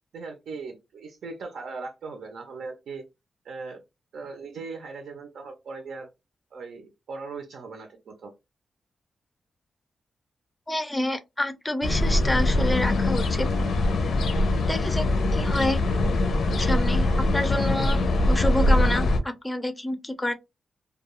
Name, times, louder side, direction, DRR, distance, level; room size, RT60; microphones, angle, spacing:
voice 1, 0.1-3.0 3.4-3.8 4.1-6.1 6.5-8.3, right 4 dB, 85° right, 0.6 m, -39 dB
voice 2, 10.7-13.5 14.7-15.1 15.3-15.8 16.6-20.3, left 1 dB, 10° left, 0.4 m, -28 dB
sound 1, 11.8-19.2, left 2 dB, 70° left, 0.5 m, -22 dB
2.3 x 2.3 x 2.9 m
wide cardioid pair, 160°, 0 cm